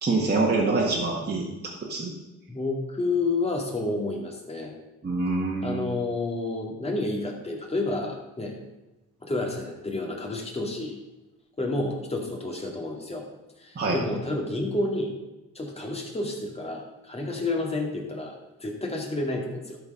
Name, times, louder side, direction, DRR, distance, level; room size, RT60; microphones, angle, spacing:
voice 1, 0.0-1.5 1.8-2.1 5.0-5.9 13.7-14.0, right 3 dB, 35° right, -3 dB, 1.7 m, -25 dB
voice 2, 2.5-4.7 5.6-8.6 9.2-11.0 11.6-13.3 13.6-15.1 15.5-19.8, left 2 dB, 20° left, 0 dB, 2.3 m, -30 dB
12.0 x 4.7 x 5.6 m, 1.0 s
cardioid pair, 90°, 30 cm